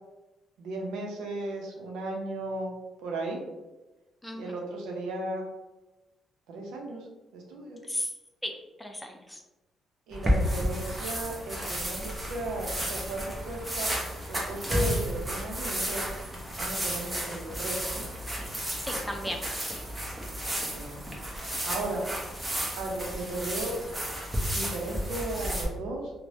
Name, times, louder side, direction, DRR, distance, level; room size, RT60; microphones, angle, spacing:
voice 1, 0.6-2.7 3.0-3.4 4.3-5.4 6.5-7.1 7.3-7.8 10.1-13.9 14.3-16.1 16.6-18.0 20.5-21.1 21.6-22.1 22.8-23.8 24.5-26.1, right 2 dB, 90° right, 0 dB, 0.6 m, -35 dB
voice 2, 4.2-4.6 7.8-8.1 8.4-8.5 8.8-9.4 18.8-19.4, left 1 dB, 5° left, 3 dB, 0.4 m, -35 dB
sound 1, 10.1-25.6, equal, 15° right, 0.8 m, -32 dB
3.0 x 2.1 x 2.7 m, 1.1 s
cardioid pair, 90°, 0 cm